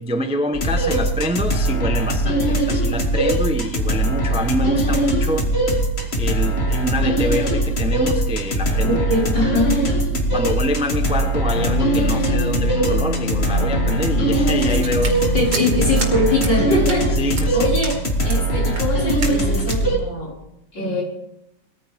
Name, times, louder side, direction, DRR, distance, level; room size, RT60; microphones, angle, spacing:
voice 1, 0.0-5.5 6.2-9.0 10.1-15.3 17.2-17.7 19.6-19.7, left 1 dB, 5° right, 6 dB, 0.6 m, -26 dB
sound 1, 0.5-20.0, right 1 dB, 35° left, 2.2 m, -21 dB
voice 2, 8.8-9.8 15.3-17.1 17.5-18.0 18.2-20.3 20.7-21.0, left 1 dB, 75° left, -5 dB, 6.2 m, -22 dB
Wind instrument woodwind instrument, 11.5-18.5, left 4 dB, 50° left, 2.0 m, -29 dB
sound 2, 14.6-16.1 16.4-16.6 16.9-17.0 17.4-17.5 17.8-18.0 18.3-18.4 18.7-18.9 19.2-19.4 19.7-19.8, right 3 dB, 85° right, 2.9 m, -30 dB
20.0 x 14.5 x 3.6 m, 0.83 s
omnidirectional pair, 2.0 m